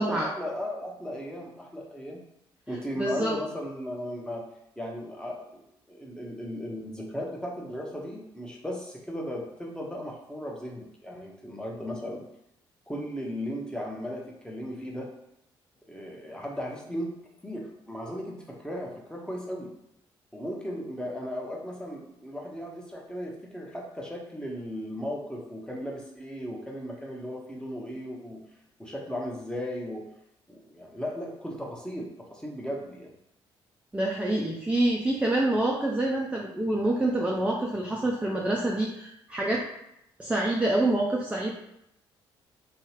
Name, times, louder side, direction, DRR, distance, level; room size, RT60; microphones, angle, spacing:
voice 1, 0.0-2.2 2.7-4.4 4.8-5.6 5.9-12.2 12.9-15.1 15.9-17.1 17.4-19.7 20.3-28.4 28.8-30.0 30.5-33.1, equal, 5° left, -2 dB, 0.9 m, -36 dB
voice 2, 3.0-3.4 33.9-39.6 40.2-41.5, right 1 dB, 10° right, -2 dB, 0.5 m, -26 dB
2.7 x 2.3 x 3.1 m, 0.80 s
hypercardioid pair, 45°, 13 cm